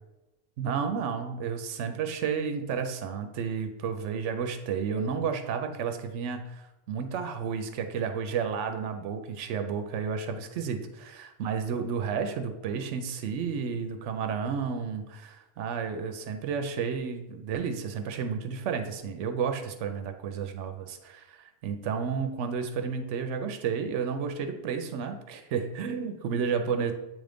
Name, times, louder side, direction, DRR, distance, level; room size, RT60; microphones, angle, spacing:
voice 1, 0.6-26.9, right 6 dB, 80° right, 7 dB, 0.9 m, -32 dB
7.8 x 3.5 x 3.8 m, 1.0 s
omnidirectional pair, 1.2 m